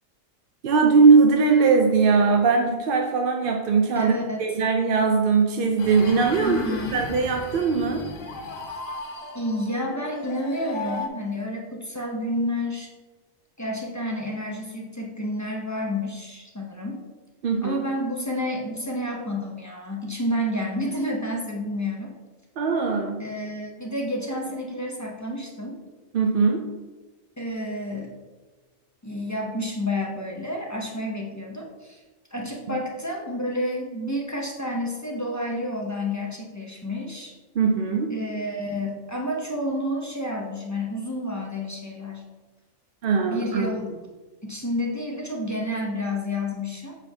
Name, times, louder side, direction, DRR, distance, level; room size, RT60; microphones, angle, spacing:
voice 1, 0.6-4.1 4.4-6.6 6.9-8.0 17.4-17.8 22.6-23.2 26.1-26.6 37.6-38.1 43.0-43.7, right 4 dB, 60° right, 2 dB, 0.5 m, -20 dB
voice 2, 3.9-4.4 6.4-7.0 9.3-12.9 13.6-17.0 17.6-22.1 23.2-25.8 27.4-28.1 29.0-32.0 32.3-37.3 38.1-42.3 43.2-43.9 44.4-47.0, left 1 dB, 20° left, -1 dB, 0.4 m, -30 dB
sound 1, 5.8-11.1, left 3 dB, 65° left, 1.0 m, -36 dB
7.1 x 4.4 x 3.4 m, 1.2 s
omnidirectional pair, 1.5 m